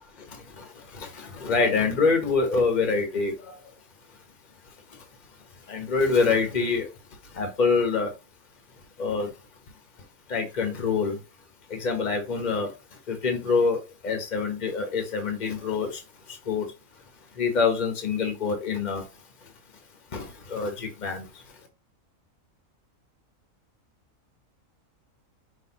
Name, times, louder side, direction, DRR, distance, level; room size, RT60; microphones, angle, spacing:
voice 1, 0.9-3.5 5.7-6.9 7.3-8.1 9.0-9.3 10.3-11.2 11.7-12.7 13.1-13.8 14.0-16.0 16.5-16.6 17.4-19.0 20.1-21.2, left 4 dB, 35° left, 1.2 m, -25 dB
5.6 x 3.1 x 3.0 m
omnidirectional pair, 1.4 m